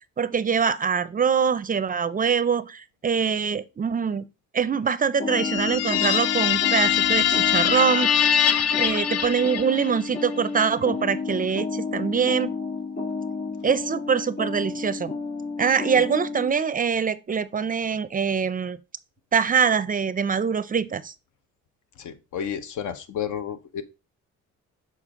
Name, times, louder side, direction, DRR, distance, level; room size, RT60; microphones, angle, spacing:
voice 1, 0.2-4.2 4.5-8.1 8.8-12.5 13.6-15.1 15.6-18.8 19.3-21.1, right 6 dB, 30° right, 0.4 m, -24 dB
sound 1, 5.2-16.5, left 4 dB, 30° left, 2.0 m, -31 dB
sound 2, 5.3-10.0, left 10 dB, 55° left, 0.5 m, -23 dB
voice 2, 22.0-23.8, left 8 dB, 75° left, 0.9 m, -31 dB
6.7 x 4.4 x 3.6 m
cardioid pair, 90°, 30 cm